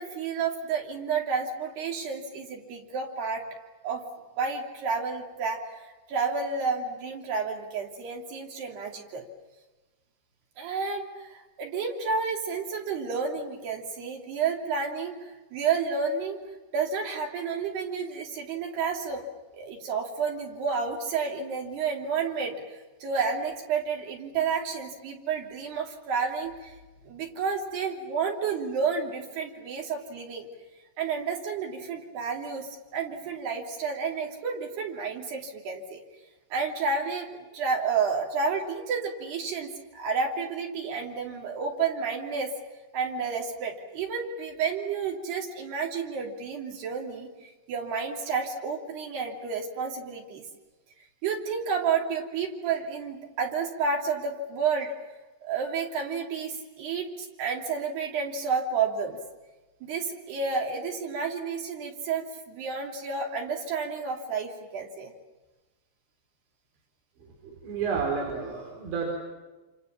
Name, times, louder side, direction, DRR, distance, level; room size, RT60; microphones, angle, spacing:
voice 1, 0.0-3.4 3.8-4.0 4.4-9.2 10.6-16.4 16.7-19.2 19.5-26.7 27.0-30.5 31.0-36.0 36.5-42.5 42.9-50.4 51.2-54.9 55.4-59.2 59.8-65.1, right 5 dB, 70° right, 0 dB, 4.9 m, -31 dB
voice 2, 67.2-69.1, right 5 dB, 85° right, -1 dB, 6.6 m, -31 dB
28.0 x 27.5 x 7.3 m, 1.2 s
omnidirectional pair, 5.0 m